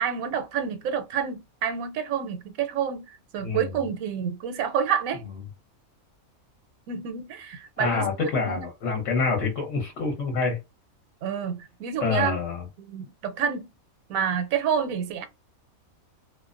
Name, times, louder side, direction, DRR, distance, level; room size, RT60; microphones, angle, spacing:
voice 1, 0.0-5.2 6.9-8.7 11.2-12.4 12.8-13.7 14.1-15.3, right 7 dB, 80° right, 1.0 m, -29 dB
voice 2, 3.4-3.8 7.8-10.6 12.0-12.6, left 4 dB, 60° left, 1.0 m, -26 dB
2.5 x 2.0 x 2.4 m
omnidirectional pair, 1.5 m